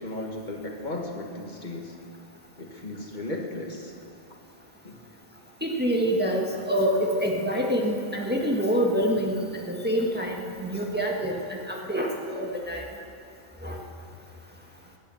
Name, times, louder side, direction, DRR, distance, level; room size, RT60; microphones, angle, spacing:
voice 1, 0.0-1.9 2.6-3.9 4.8-5.0, left 2 dB, 50° left, 1 dB, 1.6 m, -35 dB
voice 2, 5.6-9.4 9.7-12.8 13.6-13.8, equal, 10° right, -1 dB, 1.6 m, -26 dB
18.0 x 11.0 x 7.0 m, 2.7 s
omnidirectional pair, 1.0 m